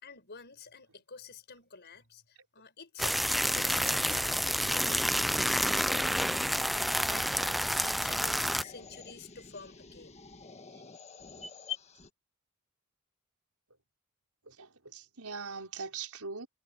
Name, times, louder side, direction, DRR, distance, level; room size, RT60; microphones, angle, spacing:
voice 1, 0.0-10.2, left 4 dB, 50° left, 5.6 m, -50 dB
sound 1, 3.0-8.6, equal, ahead, 0.4 m, -29 dB
sound 2, 5.8-12.1, left 7 dB, 30° left, 1.5 m, -48 dB
voice 2, 14.4-16.5, right 5 dB, 85° right, 4.9 m, -41 dB
head